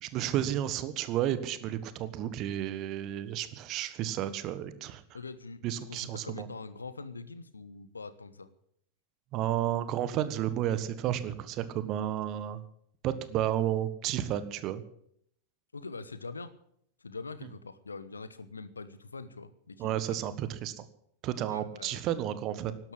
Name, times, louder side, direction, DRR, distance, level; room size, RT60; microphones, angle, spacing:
voice 1, 0.0-5.0 5.6-6.5 9.3-12.6 13.0-14.8 19.8-20.8 21.2-22.8, right 11 dB, 35° right, 13 dB, 1.3 m, -32 dB
voice 2, 5.1-8.5 15.7-16.5 17.0-20.2 21.4-22.0 22.8-22.9, left 4 dB, 75° left, 15 dB, 1.1 m, -43 dB
12.5 x 11.5 x 9.9 m, 0.70 s
figure-of-eight pair, 90°, 0 cm